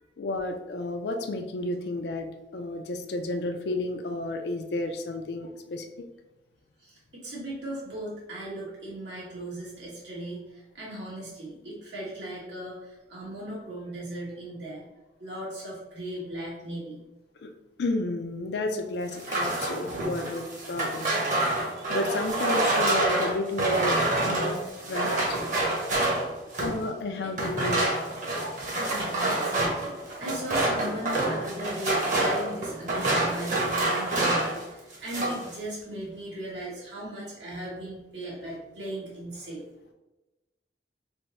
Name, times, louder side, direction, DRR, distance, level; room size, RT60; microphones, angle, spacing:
voice 1, 0.2-6.1 17.4-17.5 17.8-21.1 21.9-25.4 26.6-28.0, left 2 dB, 75° left, 5 dB, 0.4 m, -32 dB
voice 2, 6.8-14.8 15.2-17.0 20.5-20.9 21.3-22.0 27.2-27.3 28.8-39.6, right 1 dB, 85° right, -6 dB, 1.4 m, -38 dB
sound 1, 19.1-26.8 27.3-34.6 34.9-35.5, right 2 dB, 45° right, 0.9 m, -27 dB
3.4 x 2.1 x 4.0 m, 1.1 s
head